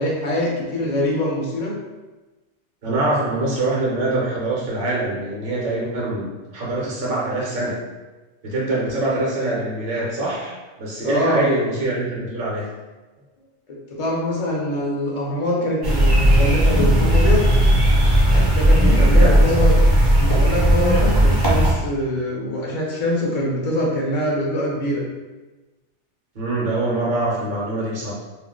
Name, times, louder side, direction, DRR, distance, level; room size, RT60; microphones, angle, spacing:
voice 1, 0.0-1.8 11.0-11.4 13.7-17.5 18.5-19.7 20.2-25.0, left 1 dB, 65° left, -3 dB, 0.3 m, -24 dB
voice 2, 2.8-7.8 8.4-12.7 18.8-19.4 26.3-28.1, right 2 dB, 55° right, -5 dB, 0.8 m, -24 dB
sound 1, 15.8-21.7, right 1 dB, 30° right, 0.4 m, -15 dB
2.4 x 2.1 x 3.6 m, 1.2 s
omnidirectional pair, 1.2 m